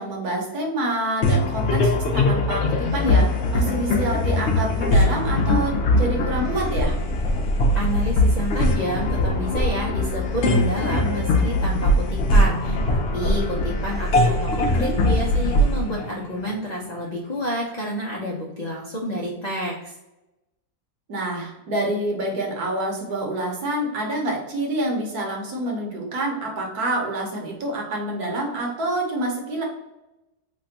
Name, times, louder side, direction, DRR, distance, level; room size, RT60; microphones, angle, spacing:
voice 1, 0.0-7.0 14.5-14.9 21.1-29.6, right 1 dB, 70° right, -1 dB, 1.4 m, -27 dB
sound 1, 1.2-16.9, left 1 dB, 60° left, 0.8 m, -21 dB
voice 2, 7.7-19.9, equal, 75° left, -3 dB, 0.3 m, -29 dB
3.3 x 2.3 x 4.0 m, 0.96 s
omnidirectional pair, 1.7 m